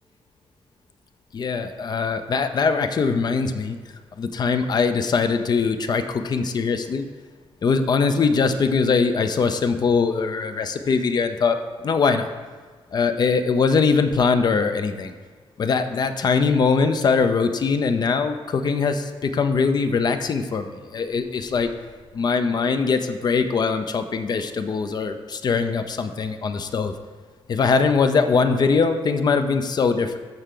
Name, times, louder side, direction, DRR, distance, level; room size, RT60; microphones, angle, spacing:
voice 1, 1.3-3.8 4.2-7.1 7.6-11.6 11.8-12.3 12.9-15.1 15.6-21.7 22.1-26.9 27.5-30.2, left 5 dB, 45° left, 8 dB, 0.5 m, -22 dB
13.0 x 4.6 x 3.8 m, 1.5 s
cardioid pair, 125°, 10 cm